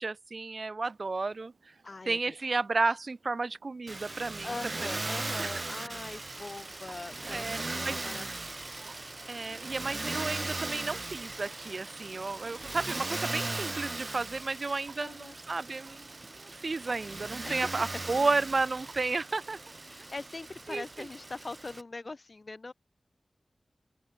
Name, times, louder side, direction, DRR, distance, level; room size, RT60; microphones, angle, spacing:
voice 1, 0.0-1.7 2.1-4.5 4.8-5.0 5.4-5.5 7.2-8.0 9.3-19.6 20.7-21.1, right 3 dB, 60° right, 0.3 m, -32 dB
Clock, 0.8-19.4, right 4 dB, 75° right, 5.3 m, -60 dB
voice 2, 1.8-2.4 4.4-8.3 8.7-8.9 15.0-15.4 17.4-17.7 19.9-22.7, left 3 dB, 50° left, 0.8 m, -42 dB
Motor vehicle (road), 3.9-21.8, right 2 dB, 40° right, 1.1 m, -38 dB
open air
cardioid pair, 50°, 0 cm